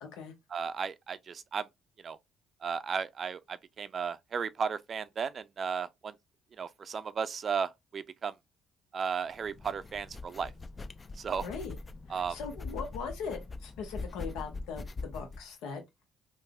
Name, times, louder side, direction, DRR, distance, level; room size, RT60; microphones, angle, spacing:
voice 1, 0.0-0.3 11.4-11.7 12.1-15.8, left 5 dB, 85° left, 0.9 m, -40 dB
voice 2, 0.5-1.7 2.0-2.2 2.6-6.1 6.6-8.3 8.9-10.5 11.2-11.5 12.1-12.4, right 6 dB, 50° right, 0.3 m, -35 dB
sound 1, 9.3-15.4, left 3 dB, 30° left, 0.3 m, -42 dB
3.4 x 2.5 x 2.3 m
supercardioid pair, 75°, 0 cm